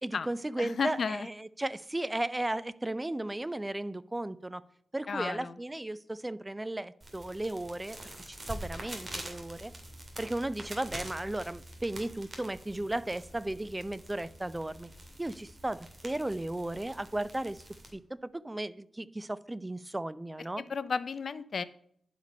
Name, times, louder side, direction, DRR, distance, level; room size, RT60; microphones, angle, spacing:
voice 1, 0.0-4.6 4.9-9.7 10.2-14.9 15.2-17.6 17.9-20.6, right 1 dB, 15° right, 17 dB, 0.5 m, -35 dB
voice 2, 0.6-1.3 5.1-5.5 20.6-21.6, left 5 dB, 65° left, 15 dB, 0.6 m, -33 dB
sound 1, 7.0-17.9, right 1 dB, 35° right, 2.7 m, -46 dB
11.0 x 5.1 x 5.2 m, 0.67 s
cardioid pair, 65°, 0 cm